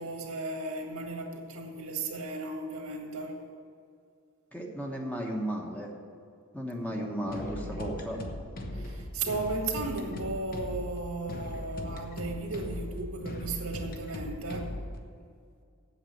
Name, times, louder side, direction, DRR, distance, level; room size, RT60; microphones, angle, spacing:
voice 1, 0.0-3.4 6.8-8.3 8.7-14.8, right 3 dB, 80° right, 2 dB, 1.8 m, -36 dB
voice 2, 4.5-5.9 6.5-8.2, equal, 5° left, 0 dB, 1.2 m, -34 dB
sound 1, 7.3-15.0, left 1 dB, 40° left, 1.0 m, -39 dB
8.2 x 8.2 x 9.1 m, 2.3 s
head